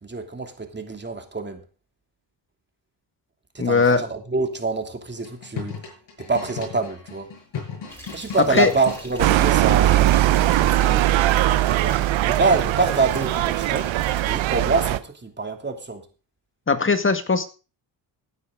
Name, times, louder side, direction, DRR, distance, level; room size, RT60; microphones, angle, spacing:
voice 1, 0.0-1.6 3.5-5.7 6.2-7.3 8.1-13.9 14.3-16.0, right 3 dB, 25° right, 4 dB, 2.8 m, -26 dB
voice 2, 3.6-4.0 8.5-8.7 16.7-17.4, left 4 dB, 25° left, 8 dB, 1.9 m, -19 dB
sound 1, 5.2-9.5 10.7-11.1, left 6 dB, 65° left, 7.6 m, -36 dB
sound 2, 7.9-14.2, equal, 5° left, 5.8 m, -43 dB
sound 3, 9.2-15.0, right 14 dB, 80° right, 0.9 m, -20 dB
16.5 x 9.7 x 3.8 m, 0.35 s
cardioid pair, 90°, 46 cm